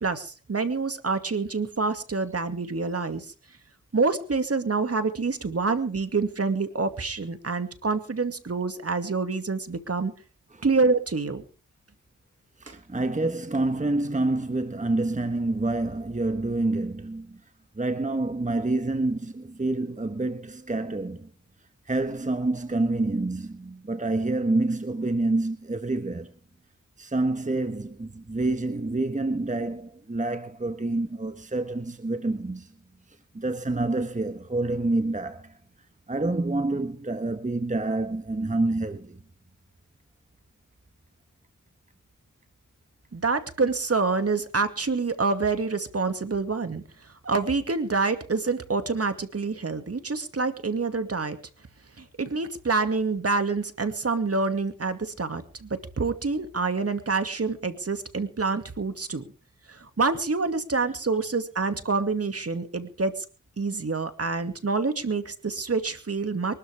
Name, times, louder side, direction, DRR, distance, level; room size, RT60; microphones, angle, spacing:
voice 1, 0.0-3.3 3.9-10.1 10.6-11.4 12.7-12.8 43.1-46.8 47.2-51.4 52.0-59.2 59.7-63.2 63.6-66.6, right 4 dB, 50° right, 2.3 m, -27 dB
voice 2, 12.6-17.4 17.8-21.3 21.9-26.3 27.0-32.7 33.3-35.5 36.1-39.2, right 2 dB, 25° right, 1.4 m, -27 dB
23.5 x 13.0 x 3.6 m
cardioid pair, 45°, 31 cm